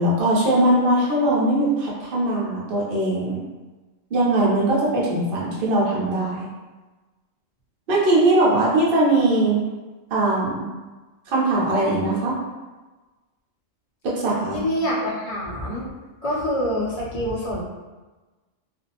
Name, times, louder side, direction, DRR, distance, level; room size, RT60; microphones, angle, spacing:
voice 1, 0.0-3.4 4.1-6.5 7.9-9.6 10.1-10.6 11.3-12.4 14.0-14.6, right 1 dB, 50° right, -6 dB, 0.7 m, -20 dB
voice 2, 14.5-15.9 16.2-17.6, equal, 40° left, -6 dB, 0.5 m, -26 dB
2.5 x 2.0 x 2.8 m, 1.2 s
omnidirectional pair, 1.4 m